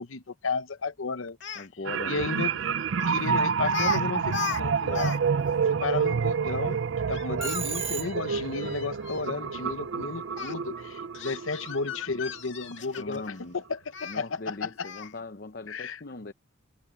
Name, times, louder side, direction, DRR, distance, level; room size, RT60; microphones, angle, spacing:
voice 1, 0.0-1.4 2.1-2.5 3.1-5.2 5.7-6.8 7.1-14.9 15.7-16.0, left 4 dB, 80° left, 0.9 m, -33 dB
Speech, 1.3-1.7 3.0-3.2 3.7-4.0 4.3-5.2 5.5-5.6 7.1-9.3 10.3-10.5 11.1-13.3 13.9-14.2 14.8-15.2, left 6 dB, 65° left, 2.1 m, -36 dB
voice 2, 1.6-2.3 3.1-3.2 13.0-13.6 14.1-16.3, left 3 dB, 50° left, 0.8 m, -40 dB
sound 1, 1.8-12.6 13.0-13.2, right 6 dB, 70° right, 0.5 m, -29 dB
Telephone, 7.4-8.5, right 7 dB, 30° right, 1.6 m, -34 dB
head